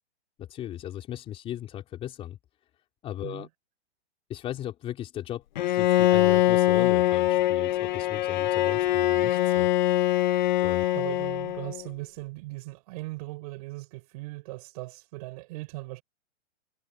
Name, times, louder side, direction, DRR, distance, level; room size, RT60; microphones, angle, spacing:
voice 1, 0.4-2.4 3.0-3.5 4.3-9.7 10.6-10.8, left 12 dB, 15° left, 4.1 m, -37 dB
Bowed string instrument, 5.6-11.8, left 15 dB, 40° left, 1.2 m, -23 dB
voice 2, 10.9-16.0, right 21 dB, 35° right, 7.6 m, -39 dB
hypercardioid pair, 165°, 35 cm